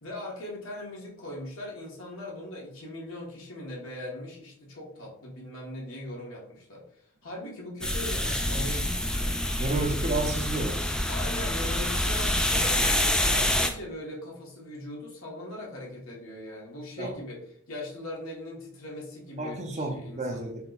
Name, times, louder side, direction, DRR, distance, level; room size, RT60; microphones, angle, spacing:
voice 1, 0.0-9.5 11.1-20.5, left 1 dB, 85° left, -3 dB, 1.4 m, -40 dB
sound 1, 7.8-13.7, left 1 dB, 5° left, 0.3 m, -26 dB
voice 2, 9.5-10.9 17.0-17.1 19.4-20.7, right 2 dB, 35° right, 3 dB, 0.6 m, -31 dB
4.3 x 2.2 x 3.9 m, 0.65 s
head